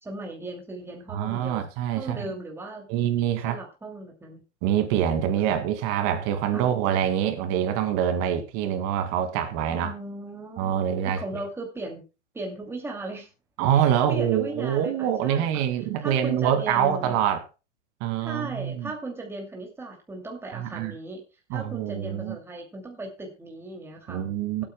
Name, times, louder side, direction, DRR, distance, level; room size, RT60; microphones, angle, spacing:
voice 1, 0.0-1.7 2.0-2.9 3.4-4.4 6.5-6.7 9.7-12.0 12.3-13.3 13.7-15.6 16.0-17.2 18.2-21.2 21.5-24.3, right 2 dB, 5° right, 0 dB, 2.5 m, -37 dB
voice 2, 1.1-2.3 2.9-3.6 4.6-9.9 10.6-11.4 13.6-17.4 18.0-18.9 20.5-20.9 21.5-22.4 24.1-24.6, right 9 dB, 40° right, 8 dB, 2.2 m, -25 dB
25.0 x 8.7 x 2.2 m, 0.29 s
hypercardioid pair, 125°, 36 cm